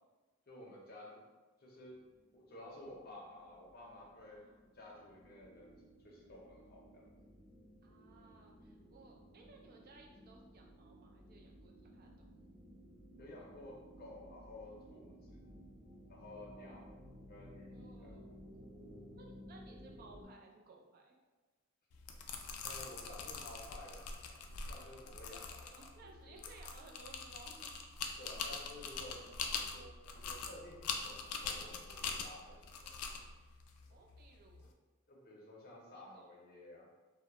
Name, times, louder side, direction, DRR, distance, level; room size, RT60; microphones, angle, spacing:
voice 1, 0.5-1.2 1.6-2.0 2.3-4.4 4.7-5.7 6.0-7.1 13.2-15.6 16.1-16.9 17.3-18.2 22.6-26.4 28.2-29.3 29.7-32.9 33.9-34.0 35.1-36.9, left 1 dB, 45° left, -3 dB, 0.6 m, -53 dB
sound 1, 2.0-20.3, equal, 60° right, 0.8 m, -57 dB
voice 2, 4.2-4.6 7.8-12.3 16.5-17.0 17.7-18.3 19.2-21.2 26.0-27.9 28.4-28.6 33.9-34.7 35.7-36.3, right 3 dB, 45° right, 0 dB, 0.3 m, -60 dB
sound 2, 21.9-34.7, left 5 dB, 90° left, 0.3 m, -44 dB
2.3 x 2.0 x 2.9 m, 1.2 s
head